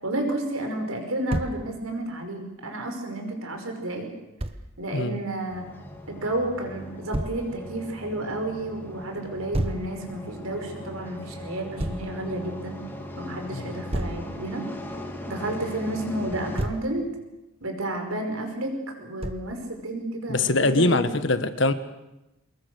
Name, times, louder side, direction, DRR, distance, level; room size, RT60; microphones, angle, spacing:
voice 1, 0.0-4.1 4.8-5.6 6.1-12.8 13.2-14.7 15.3-17.1 17.6-21.0 21.3-21.4, right 1 dB, 80° right, 5.2 m, -31 dB
Thump thud, 1.3-1.6 4.4-4.6 7.1-7.4 9.5-9.9 11.8-12.1 13.9-14.3 16.3-16.9 19.2-19.5, right 1 dB, 25° right, 1.1 m, -29 dB
sound 1, 5.5-16.7, left 1 dB, 10° left, 2.2 m, -39 dB
voice 2, 20.3-21.7, left 2 dB, 55° left, 1.3 m, -23 dB
24.0 x 21.0 x 6.8 m
head